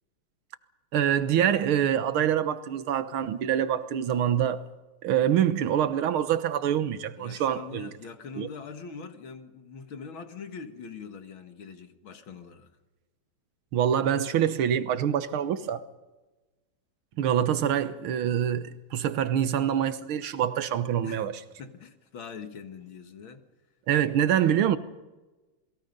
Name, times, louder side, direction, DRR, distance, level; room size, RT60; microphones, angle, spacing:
voice 1, 0.9-4.6 5.0-7.9 8.4-8.5 13.7-15.8 17.2-21.4 23.9-24.8, right 9 dB, 70° right, 1.9 m, -25 dB
voice 2, 7.2-12.7 21.0-21.3 21.6-23.4, left 5 dB, 65° left, 2.4 m, -42 dB
28.0 x 21.5 x 5.4 m
omnidirectional pair, 2.4 m